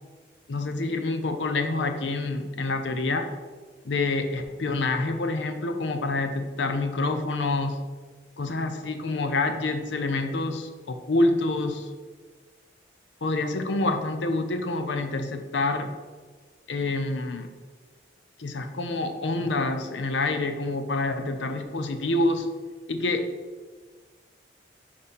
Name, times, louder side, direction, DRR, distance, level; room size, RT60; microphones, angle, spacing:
voice 1, 0.5-3.3 3.8-7.8 8.4-11.9 13.2-15.9 16.7-17.5 18.4-22.5 22.9-23.2, left 2 dB, 85° left, 7 dB, 0.7 m, -27 dB
5.1 x 4.4 x 5.3 m, 1.4 s
head